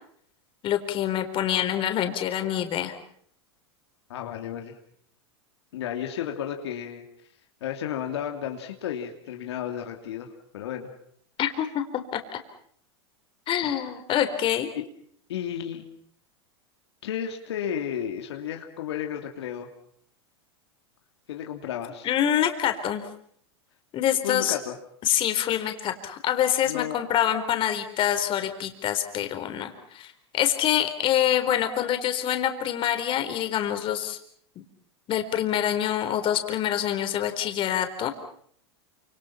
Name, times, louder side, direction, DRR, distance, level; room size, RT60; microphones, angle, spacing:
voice 1, 0.6-3.0 11.4-12.4 13.5-14.7 22.0-23.1 23.9-24.6 25.0-34.2 34.6-34.7 35.1-38.1, left 11 dB, 40° left, 7 dB, 4.1 m, -26 dB
voice 2, 4.1-4.8 5.7-7.0 7.6-10.3 10.5-10.9 13.6-13.8 14.7-14.8 15.3-15.9 17.0-19.7 21.3-22.1 24.2-24.7 26.6-27.0, left 9 dB, 75° left, 3 dB, 2.9 m, -33 dB
28.0 x 26.5 x 5.8 m, 0.65 s
hypercardioid pair, 110°, 14 cm